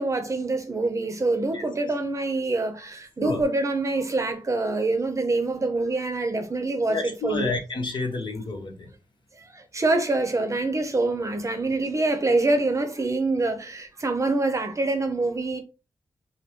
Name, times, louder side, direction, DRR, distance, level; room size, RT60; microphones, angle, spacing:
voice 1, 0.0-7.5 9.7-15.6, right 2 dB, 35° right, 0.7 m, -25 dB
voice 2, 6.9-8.9, left 3 dB, 60° left, 1.1 m, -30 dB
5.3 x 2.1 x 3.0 m
wide cardioid pair, 100°, 9 cm